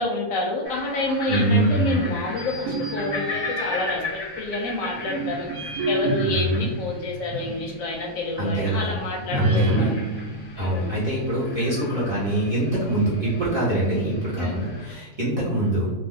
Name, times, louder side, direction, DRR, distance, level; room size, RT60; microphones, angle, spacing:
voice 1, 0.0-5.5 5.9-10.0 10.5-10.9 14.4-14.6, left 2 dB, 70° left, 0 dB, 0.9 m, -28 dB
sound 1, 0.6-14.9, left 3 dB, 30° left, 0.5 m, -38 dB
voice 2, 1.3-2.1 6.2-6.7 8.4-8.9 9.3-9.9 10.6-15.9, right 1 dB, 45° right, -8 dB, 0.7 m, -24 dB
sound 2, 2.3-4.2 4.7-7.7 8.1-8.2 9.3-11.4, right 1 dB, 75° right, 1.0 m, -28 dB
2.6 x 2.3 x 3.5 m, 1.2 s
omnidirectional pair, 1.6 m